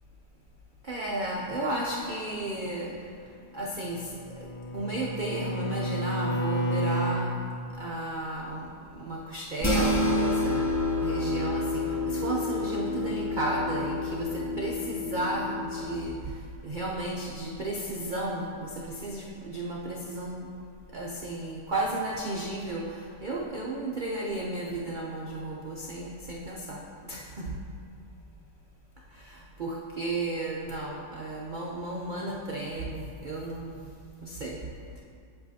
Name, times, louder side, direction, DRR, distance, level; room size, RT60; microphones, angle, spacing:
voice 1, 0.8-2.9 3.5-4.1 4.4-4.5 4.7-7.4 7.8-10.7 11.0-16.3 16.6-20.5 20.9-26.8 27.1-27.6 29.1-33.9 34.2-34.6, right 1 dB, 65° right, -2 dB, 0.4 m, -33 dB
Bowed string instrument, 3.9-7.3, right 1 dB, 80° left, 1.3 m, -30 dB
sound 1, 9.6-16.1, left 2 dB, 20° left, 0.4 m, -29 dB
8.0 x 7.8 x 2.7 m, 2.3 s
omnidirectional pair, 1.7 m